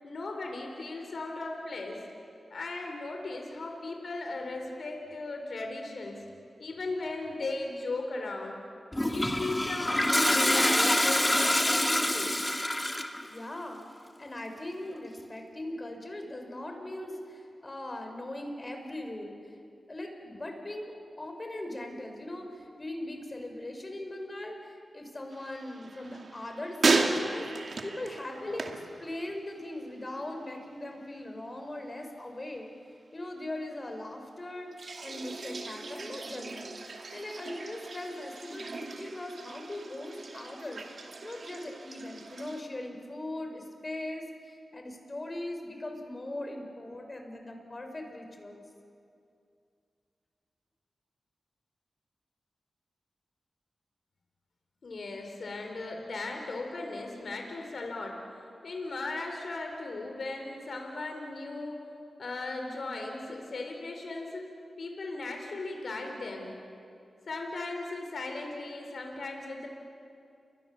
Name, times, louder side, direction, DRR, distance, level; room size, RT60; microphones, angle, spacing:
voice 1, 0.0-2.0 2.5-6.2 6.6-8.6 9.1-12.4 54.8-58.2 58.6-61.8 62.2-64.5 64.8-66.5 67.3-69.7, left 2 dB, 70° left, 2 dB, 4.3 m, -37 dB
Toilet flush, 8.9-13.2, left 1 dB, 15° left, 2.4 m, -26 dB
voice 2, 13.3-13.8 14.2-19.4 19.9-32.7 33.1-48.6, left 1 dB, 35° left, 4 dB, 5.3 m, -40 dB
sound 1, 25.3-29.7 30.0-30.6 34.7-42.6, right 3 dB, 65° right, 2.4 m, -35 dB
30.0 x 23.0 x 7.3 m, 2.5 s
cardioid pair, 50°, 0 cm